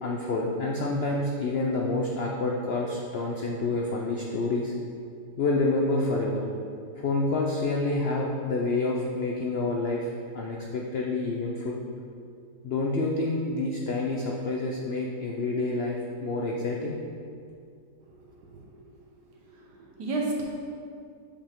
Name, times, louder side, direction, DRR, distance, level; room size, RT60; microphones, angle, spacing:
voice 1, 0.0-4.7 5.4-6.4 7.0-10.1 10.3-11.8 12.6-17.0, left 2 dB, 85° left, -1 dB, 0.5 m, -28 dB
voice 2, 18.5-18.9 19.4-20.4, right 3 dB, 80° right, -1 dB, 1.7 m, -33 dB
7.1 x 5.2 x 3.6 m, 2.3 s
omnidirectional pair, 1.8 m